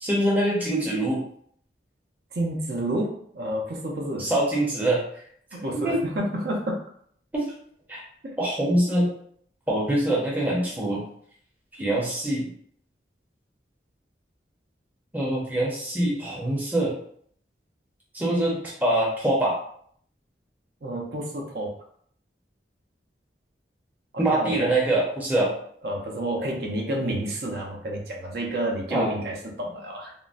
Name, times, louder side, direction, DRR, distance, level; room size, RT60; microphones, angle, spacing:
voice 1, 0.0-1.2 4.2-5.0 5.7-6.1 7.3-7.5 7.9-8.0 8.4-9.1 9.7-11.0 11.8-12.5 15.1-17.0 18.1-19.6 24.2-25.5 28.9-29.1, right 1 dB, 10° right, -4 dB, 0.6 m, -24 dB
voice 2, 2.3-4.3 5.5-6.8 8.2-8.4 20.8-21.7 24.1-24.7 25.8-30.1, right 1 dB, 60° right, -1 dB, 0.6 m, -30 dB
3.6 x 2.0 x 2.5 m, 0.63 s
head